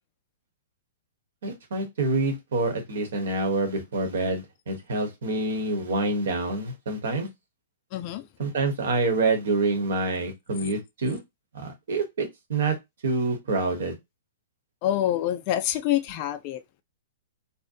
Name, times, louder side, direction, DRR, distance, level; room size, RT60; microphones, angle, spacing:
voice 1, 1.4-7.3 8.4-11.2 11.5-12.8 13.0-13.9, right 3 dB, 70° right, 1.0 m, -27 dB
voice 2, 7.9-8.2 14.8-16.8, left 12 dB, 35° left, 0.3 m, -27 dB
2.7 x 2.1 x 2.4 m
hypercardioid pair, 160°, 0 cm